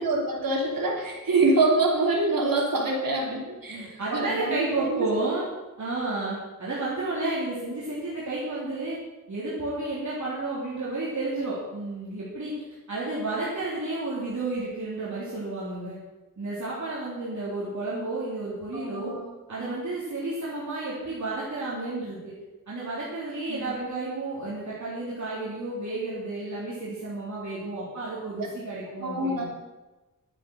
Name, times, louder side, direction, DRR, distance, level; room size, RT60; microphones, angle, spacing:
voice 1, 0.0-5.1 18.7-19.2 19.5-19.7 23.5-23.7 28.4-28.5 29.0-29.4, right 2 dB, 75° right, -1 dB, 3.2 m, -26 dB
voice 2, 3.7-5.5 5.8-9.0 9.3-12.5 12.9-16.0 16.4-19.1 19.5-22.3 22.7-29.4, right 2 dB, 55° right, -7 dB, 3.5 m, -31 dB
11.5 x 9.0 x 6.5 m, 1.1 s
wide cardioid pair, 90°, 34 cm